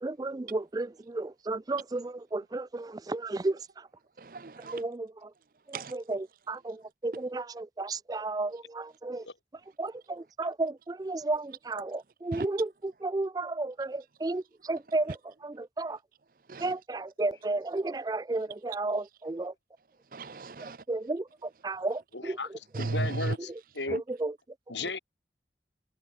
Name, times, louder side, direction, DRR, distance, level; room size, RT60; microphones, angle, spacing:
voice 1, 0.0-3.6 4.7-5.3 5.7-9.3 9.8-15.2 15.4-16.0 16.6-19.5 20.9-22.4 23.9-24.3, right 2 dB, 20° right, 0.3 m, -33 dB
voice 2, 4.2-4.8 5.7-5.9 12.3-12.5 16.5-16.7 20.1-20.8 22.7-23.3 23.9-24.0, right 3 dB, 50° right, 0.7 m, -34 dB
voice 3, 22.1-24.0 24.7-25.0, left 3 dB, 90° left, 5.4 m, -35 dB
head